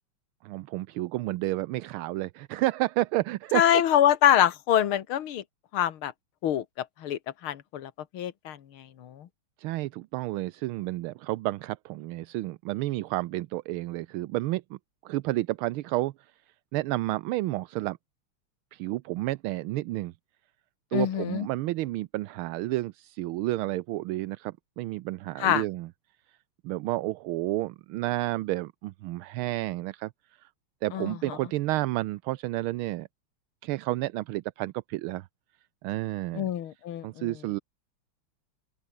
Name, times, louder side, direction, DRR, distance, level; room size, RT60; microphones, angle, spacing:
voice 1, 0.4-3.6 9.6-16.1 16.7-18.0 18.7-20.1 20.9-25.9 26.6-30.1 30.4-30.5 30.8-33.1 33.6-35.3 35.8-36.5 37.0-37.6, right 17 dB, 80° right, 1.5 m, -31 dB
voice 2, 3.5-5.4 5.7-6.1 6.4-8.6 9.0-9.3 20.9-21.5 25.4-25.6 30.9-31.4 36.4-37.3, left 10 dB, 75° left, 2.2 m, -25 dB
open air
omnidirectional pair, 2.3 m